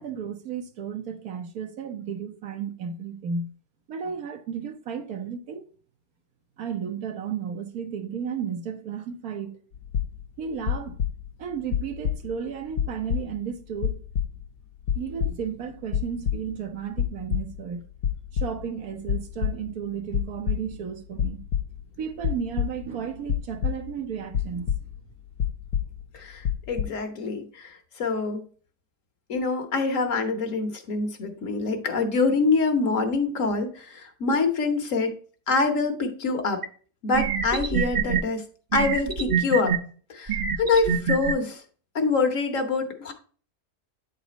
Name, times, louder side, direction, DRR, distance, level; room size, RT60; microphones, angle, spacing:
voice 1, 0.0-3.5 3.9-5.7 6.6-9.6 10.4-11.0 11.4-14.0 14.9-17.8 18.3-21.4 22.0-24.7, right 7 dB, 70° right, 1.3 m, -33 dB
sound 1, 9.7-10.4 10.7-11.4 11.7-12.5 12.7-13.5 13.8-14.6 14.9-15.6 15.9-16.7 17.0-17.6 17.9-18.8 19.1-19.8 20.1-20.9 21.2-21.8 22.2-24.0 24.3-25.1 25.4-26.2 26.4-26.8, left 8 dB, 85° left, 1.3 m, -28 dB
voice 2, 26.1-28.5 29.3-35.2 35.5-36.6 37.0-38.4 38.7-39.8 40.1-41.6 41.9-43.1, left 4 dB, 60° left, 1.4 m, -25 dB
sound 2, 36.6-36.7 37.1-38.2 38.7-39.8 40.3-41.3, right 6 dB, 40° right, 0.6 m, -25 dB
8.8 x 4.2 x 4.0 m
omnidirectional pair, 1.6 m